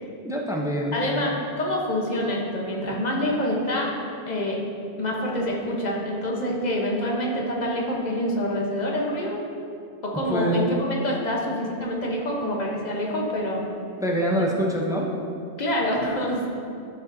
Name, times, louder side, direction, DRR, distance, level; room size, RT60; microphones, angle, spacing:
voice 1, 0.2-1.3 10.1-10.7 14.0-15.1, equal, 5° right, -1 dB, 0.5 m, -25 dB
voice 2, 0.9-3.9 4.3-4.6 5.0-9.4 10.0-13.6 15.6-16.5, equal, 45° left, -2 dB, 1.1 m, -26 dB
11.0 x 5.2 x 2.7 m, 2.6 s
omnidirectional pair, 1.1 m